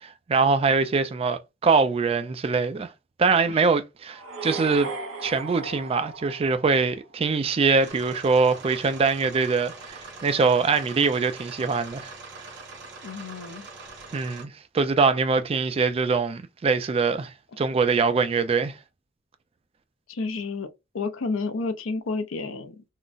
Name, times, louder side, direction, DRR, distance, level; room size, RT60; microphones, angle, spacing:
voice 1, 0.0-2.9 3.2-4.9 5.2-12.1 14.1-18.7, right 4 dB, 30° right, 0.3 m, -23 dB
sound 1, 4.1-7.1, right 3 dB, 80° right, 0.7 m, -36 dB
sound 2, 7.8-14.4, right 3 dB, 60° right, 1.0 m, -43 dB
voice 2, 13.0-13.7 20.1-20.7 20.9-22.8, left 3 dB, 85° left, 0.6 m, -30 dB
3.8 x 2.0 x 2.4 m
head